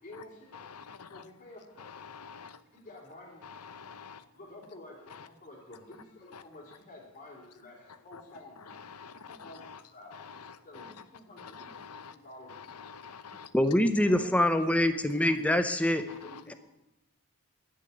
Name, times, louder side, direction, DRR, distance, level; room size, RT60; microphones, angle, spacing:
voice 1, 0.0-0.6 1.0-1.9 2.7-3.5 4.3-8.8 9.3-10.2 10.6-12.8 13.8-15.3 16.2-16.5, left 1 dB, 35° left, -3 dB, 3.4 m, -50 dB
voice 2, 0.7-1.1 2.1-2.6 3.7-4.2 9.0-9.8 10.2-10.4 10.8-10.9 11.4-12.1 12.8-13.5 16.2-16.3, left 6 dB, 80° left, 14 dB, 0.8 m, -47 dB
voice 3, 13.5-16.0, left 1 dB, 5° left, 9 dB, 0.7 m, -25 dB
12.0 x 6.6 x 9.7 m, 0.91 s
head